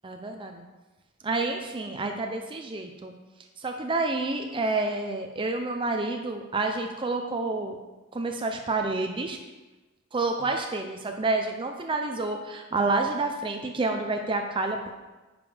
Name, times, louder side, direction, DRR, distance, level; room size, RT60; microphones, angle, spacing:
voice 1, 0.0-0.6 1.2-3.1 3.6-7.8 8.1-9.4 10.1-14.9, right 3 dB, 25° right, 4 dB, 0.6 m, -29 dB
9.9 x 5.3 x 5.0 m, 1.2 s
head